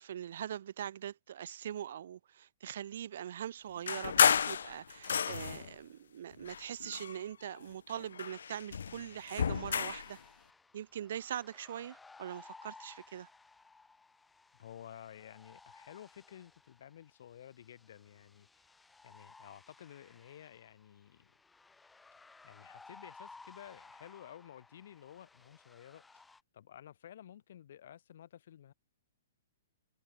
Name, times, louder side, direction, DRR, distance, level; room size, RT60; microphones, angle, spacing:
voice 1, 0.0-10.2 10.7-13.3, right 10 dB, 50° right, 3.0 m, -42 dB
sound 1, 3.9-5.7 6.4-7.6 7.9-10.1, left 7 dB, 80° left, 0.3 m, -31 dB
sound 2, 9.1-26.4, left 3 dB, 5° left, 3.9 m, -58 dB
voice 2, 14.6-18.7 19.0-21.3 22.4-28.7, left 10 dB, 50° left, 5.6 m, -53 dB
hypercardioid pair, 175°, 0 cm